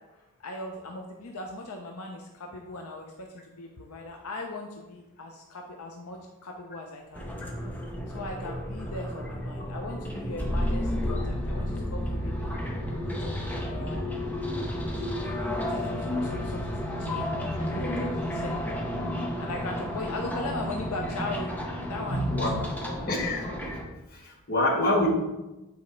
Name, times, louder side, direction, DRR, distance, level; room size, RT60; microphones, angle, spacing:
voice 1, 0.1-7.5 8.1-12.5 12.8-14.1 15.2-16.7 17.0-17.3 17.6-18.6 19.1-21.5 21.9-22.3 22.5-23.0, left 2 dB, 75° left, 2 dB, 0.6 m, -39 dB
sound 1, 7.1-23.8, left 1 dB, 5° left, 0.7 m, -32 dB
voice 2, 22.1-22.6 23.1-23.5 24.1-25.1, left 1 dB, 45° left, -1 dB, 1.3 m, -27 dB
8.1 x 4.1 x 3.2 m, 1.0 s
head